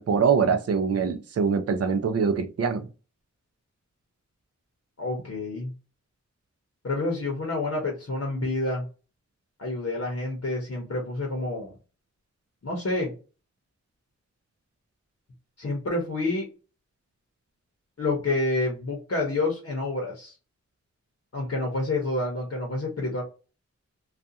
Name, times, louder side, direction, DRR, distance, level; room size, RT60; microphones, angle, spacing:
voice 1, 0.0-2.9, right 6 dB, 55° right, 0.4 m, -24 dB
voice 2, 5.0-5.7 6.8-8.8 9.6-11.7 12.6-13.1 15.6-16.5 18.0-20.3 21.3-23.2, left 2 dB, 60° left, 0.9 m, -28 dB
2.5 x 2.3 x 2.7 m
wide cardioid pair, 70°, 29 cm